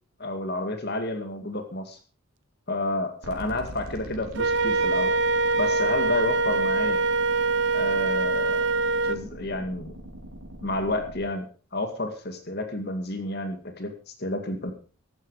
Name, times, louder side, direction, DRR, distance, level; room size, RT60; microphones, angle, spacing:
voice 1, 0.2-2.0 2.7-5.1 5.6-7.0 7.7-8.7 9.0-9.9 10.6-11.5 11.7-14.7, left 2 dB, 45° left, 6 dB, 2.2 m, -30 dB
sound 1, 3.2-11.2, right 1 dB, 85° right, 4.7 m, -42 dB
Wind instrument woodwind instrument, 4.4-9.2, right 3 dB, 50° right, 0.7 m, -24 dB
15.0 x 12.0 x 4.9 m, 0.38 s
head